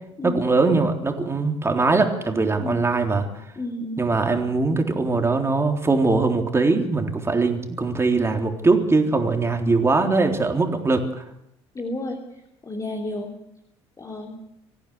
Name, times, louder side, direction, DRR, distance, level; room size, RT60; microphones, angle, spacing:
voice 1, 0.2-3.3 4.0-11.1, right 3 dB, 20° right, 4 dB, 3.8 m, -21 dB
voice 2, 3.6-4.1 11.7-12.2 12.6-13.3 14.0-14.4, left 2 dB, 25° left, 2 dB, 3.3 m, -31 dB
25.5 x 15.0 x 8.0 m, 0.81 s
figure-of-eight pair, 60°, 14 cm